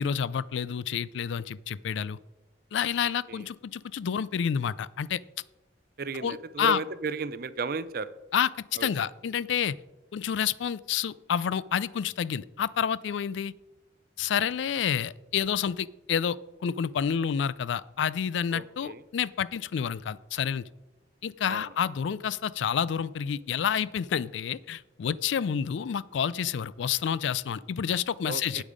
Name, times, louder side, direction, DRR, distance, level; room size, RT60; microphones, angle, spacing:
voice 1, 0.0-2.2 2.7-5.2 6.2-6.8 8.3-8.5 8.8-9.8 10.1-13.5 14.2-20.6 21.2-28.6, left 8 dB, 75° left, 19 dB, 0.3 m, -29 dB
voice 2, 3.0-3.5 6.0-8.1 8.8-8.9 18.5-19.0 21.4-21.7 28.2-28.6, right 4 dB, 50° right, 15 dB, 0.5 m, -35 dB
8.6 x 8.3 x 5.0 m, 1.0 s
head